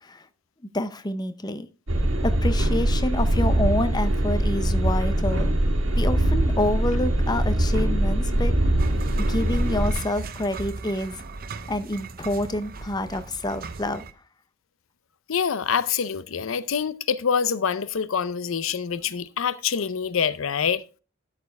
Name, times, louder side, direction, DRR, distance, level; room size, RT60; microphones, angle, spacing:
voice 1, 0.7-1.7 2.2-5.5 6.0-8.6 9.2-11.2 11.7-14.1, left 1 dB, 20° left, 0.7 m, -28 dB
sound 1, 1.9-9.9, right 1 dB, 70° right, 1.8 m, -22 dB
sound 2, 8.8-14.1, right 4 dB, 45° right, 0.7 m, -38 dB
voice 2, 15.3-20.8, left 7 dB, 80° left, 0.6 m, -25 dB
12.5 x 6.7 x 3.4 m
head